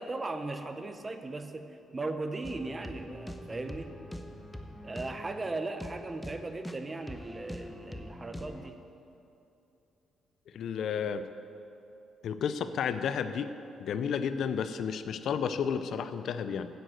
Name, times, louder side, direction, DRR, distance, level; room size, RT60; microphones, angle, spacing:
voice 1, 0.0-3.9 4.8-8.8, right 2 dB, 25° right, 8 dB, 0.8 m, -37 dB
sound 1, 2.4-8.7, equal, 5° left, 0.9 m, -44 dB
voice 2, 10.5-11.2 12.2-13.5 13.8-16.7, left 7 dB, 70° left, 11 dB, 0.5 m, -32 dB
9.3 x 9.0 x 7.9 m, 2.8 s
cardioid pair, 90°, 0 cm